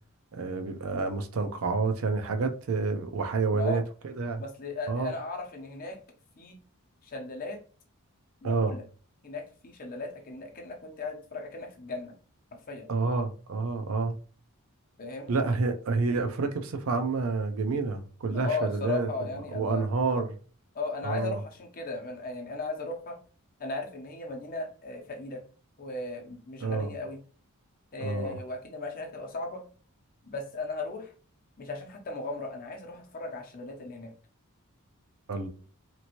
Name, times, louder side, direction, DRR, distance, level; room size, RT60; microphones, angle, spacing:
voice 1, 0.3-4.4 4.9-5.1 8.4-8.8 12.9-14.2 15.3-19.1 19.5-20.4 21.0-21.4 26.6-26.9 28.0-28.4 35.3-35.5, right 4 dB, 65° right, 0.5 m, -29 dB
voice 2, 4.4-6.0 6.4-6.6 7.0-7.6 8.4-8.8 9.2-12.1 12.5-12.9 15.0-15.3 18.3-19.9 20.7-23.2 23.6-25.4 25.8-27.2 27.9-29.6 30.2-31.1 31.6-34.1, left 3 dB, 40° left, 0.7 m, -36 dB
2.9 x 2.5 x 2.9 m
head